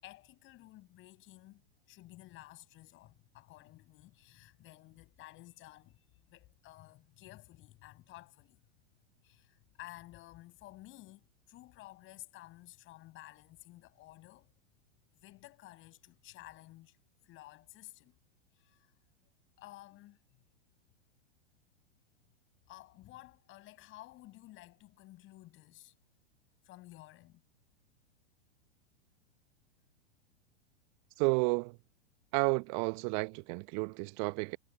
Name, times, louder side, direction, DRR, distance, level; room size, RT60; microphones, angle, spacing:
voice 1, 0.0-8.6 9.2-14.5 15.1-17.0 17.2-18.2 18.5-18.9 19.6-20.4 22.7-25.9 26.6-27.4, left 17 dB, 35° left, 7.1 m, -54 dB
voice 2, 31.2-31.7 32.3-34.6, right 33 dB, 40° right, 1.1 m, -31 dB
figure-of-eight pair, 100°, 34 cm